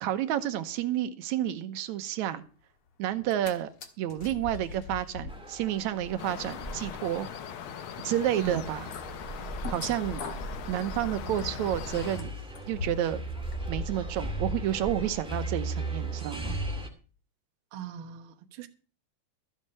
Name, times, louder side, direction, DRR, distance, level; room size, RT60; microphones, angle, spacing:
voice 1, 0.0-2.4 3.0-7.3 8.0-8.9 9.7-10.2 10.7-12.3 12.7-13.2 13.7-16.6, right 12 dB, 75° right, 2.1 m, -30 dB
sound 1, 3.1-3.5 3.8-13.2 13.5-13.6, left 4 dB, 50° left, 2.1 m, -43 dB
sound 2, 5.3-16.9, right 2 dB, ahead, 1.4 m, -37 dB
sound 3, 6.2-12.2, left 9 dB, 85° left, 1.1 m, -40 dB
voice 2, 17.7-18.7, right 8 dB, 55° right, 1.6 m, -38 dB
13.5 x 7.4 x 6.6 m
omnidirectional pair, 3.5 m